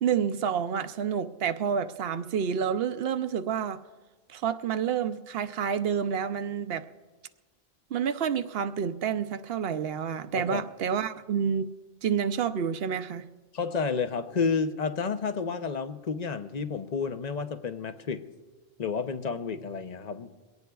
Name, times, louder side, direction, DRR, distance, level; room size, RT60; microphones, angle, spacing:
voice 1, 0.0-3.8 4.3-6.8 7.9-11.7 12.0-13.2, right 7 dB, 70° right, 11 dB, 0.8 m, -29 dB
voice 2, 13.5-18.2 18.8-20.3, left 5 dB, 45° left, 9 dB, 0.8 m, -30 dB
22.5 x 17.5 x 2.3 m, 1.3 s
omnidirectional pair, 1.1 m